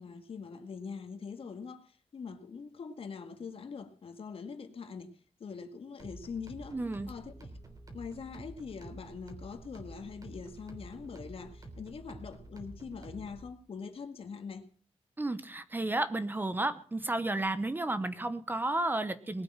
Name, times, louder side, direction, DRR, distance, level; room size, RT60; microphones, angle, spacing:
voice 1, 0.0-6.8 7.1-7.6 7.9-14.7, left 5 dB, 60° left, 1.9 m, -43 dB
sound 1, 6.0-13.5, right 2 dB, 35° right, 3.4 m, -49 dB
voice 2, 6.7-7.1 15.2-19.4, right 2 dB, 15° right, 1.0 m, -32 dB
20.0 x 8.6 x 7.4 m
wide cardioid pair, 155°, 11 cm